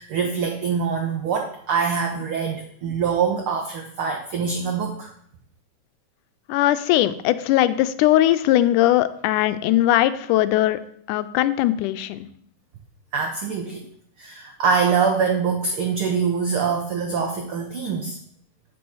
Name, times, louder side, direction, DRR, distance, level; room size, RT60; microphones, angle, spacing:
voice 1, 0.0-5.1 13.1-13.8 14.2-18.2, right 6 dB, 90° right, 4 dB, 1.2 m, -24 dB
voice 2, 6.5-10.8 11.1-12.2, left 14 dB, 90° left, 13 dB, 2.1 m, -19 dB
7.9 x 6.2 x 6.2 m, 0.65 s
omnidirectional pair, 3.6 m